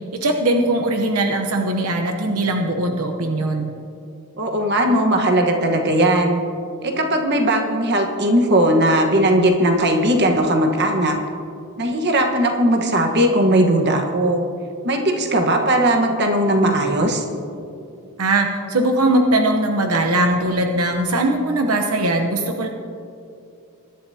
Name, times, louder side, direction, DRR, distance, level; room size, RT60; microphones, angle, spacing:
voice 1, 0.1-3.7 18.2-22.7, right 1 dB, 80° right, 4 dB, 0.9 m, -20 dB
voice 2, 4.4-6.4 6.8-11.2 11.8-14.4 14.8-17.2, right 1 dB, 50° right, 3 dB, 1.3 m, -18 dB
22.0 x 11.5 x 2.8 m, 2.6 s
head